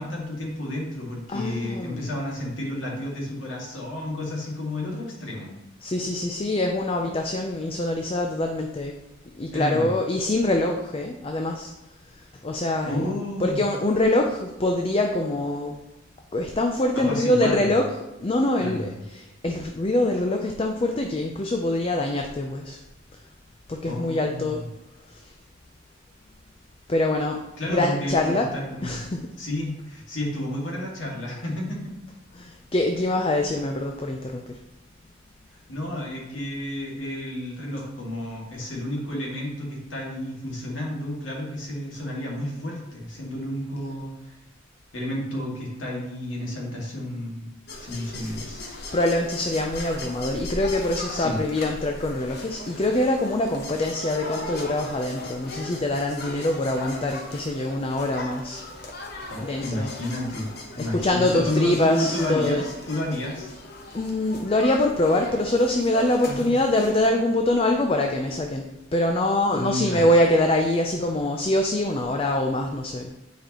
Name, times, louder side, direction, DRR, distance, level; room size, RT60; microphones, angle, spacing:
voice 1, 0.0-5.5 9.5-9.9 12.8-13.6 16.9-17.9 18.6-18.9 23.8-24.7 27.6-29.0 29.4-31.9 35.7-44.3 44.9-48.8 51.1-51.4 59.3-63.5 66.2-66.5 69.5-70.0, left 1 dB, 70° left, -3 dB, 2.1 m, -31 dB
voice 2, 1.3-2.2 5.8-8.9 9.4-11.7 12.1-13.1 13.4-15.8 16.3-22.8 23.7-24.6 25.1-25.3 26.9-27.4 27.7-28.5 28.8-29.3 32.3-34.6 43.9-44.0 48.9-58.7 59.4-59.9 60.8-62.6 63.9-73.1, left 1 dB, 30° left, 3 dB, 0.5 m, -24 dB
sound 1, 47.7-67.1, left 2 dB, 50° left, 1.1 m, -38 dB
9.0 x 5.1 x 3.0 m, 0.97 s
head